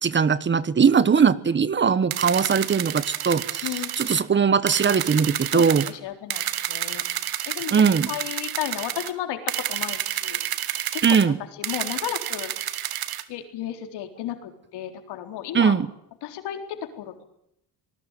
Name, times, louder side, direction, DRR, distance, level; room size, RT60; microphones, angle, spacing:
voice 1, 0.0-5.9 7.7-8.1 11.0-11.4 15.5-15.9, right 6 dB, 30° right, 17 dB, 1.3 m, -20 dB
sound 1, 2.1-4.2 4.7-5.9 6.3-9.1 9.5-11.3 11.6-13.2, right 12 dB, 60° right, 1.7 m, -30 dB
voice 2, 3.6-3.9 5.5-6.4 6.7-7.0 7.5-7.7 8.1-10.4 10.9-12.5 13.3-15.7 16.2-16.6 17.0-17.3, left 11 dB, 80° left, 6 dB, 4.0 m, -33 dB
25.0 x 20.0 x 9.1 m, 0.76 s
cardioid pair, 120°, 40 cm